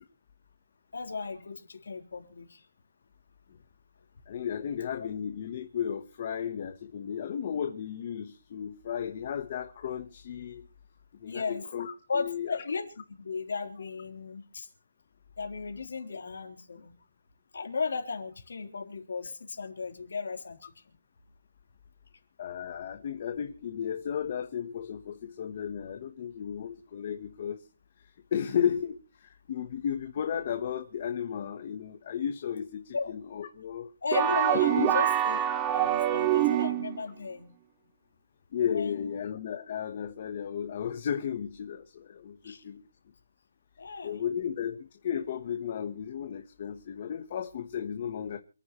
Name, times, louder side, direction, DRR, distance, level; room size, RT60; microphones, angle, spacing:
voice 1, 0.9-2.6 11.3-11.7 12.1-14.7 15.4-16.9 17.5-20.7 32.9-33.1 34.0-37.5 38.7-39.1 42.4-42.6 43.8-44.2, left 4 dB, 80° left, 3.7 m, -35 dB
voice 2, 4.3-10.6 11.2-12.6 22.4-27.6 28.3-33.9 34.8-34.9 38.5-42.8 44.0-48.4, left 8 dB, 35° left, 1.1 m, -34 dB
sound 1, 34.1-37.0, right 11 dB, 15° right, 0.6 m, -25 dB
28.0 x 9.7 x 3.1 m
hypercardioid pair, 175°, 0 cm